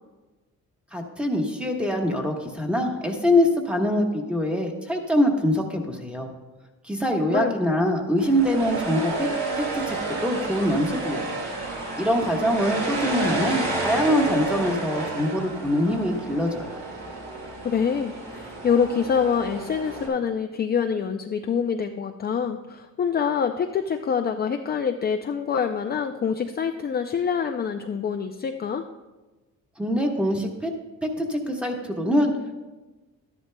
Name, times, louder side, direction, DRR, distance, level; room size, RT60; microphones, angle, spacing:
voice 1, 0.9-6.3 6.8-9.3 9.6-11.4 12.0-16.8 29.8-30.7 31.0-32.3, equal, 5° right, 2 dB, 1.3 m, -24 dB
sound 1, 8.2-20.1, right 2 dB, 55° right, 2.1 m, -31 dB
voice 2, 17.6-28.8, left 6 dB, 30° left, 5 dB, 0.4 m, -25 dB
12.5 x 11.0 x 2.2 m, 1.2 s
cardioid pair, 115°, 32 cm